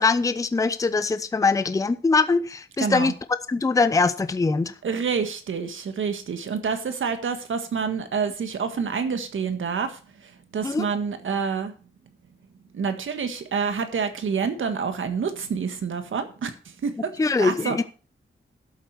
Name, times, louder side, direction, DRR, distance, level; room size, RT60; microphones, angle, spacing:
voice 1, 0.0-3.1 3.5-4.7 10.6-10.9 17.2-17.8, left 4 dB, 15° left, 12 dB, 0.5 m, -22 dB
voice 2, 2.8-3.1 4.8-11.7 12.7-16.5 16.8-17.8, right 6 dB, 70° right, 8 dB, 1.6 m, -28 dB
12.5 x 7.8 x 4.7 m, 0.36 s
wide cardioid pair, 175°, 21 cm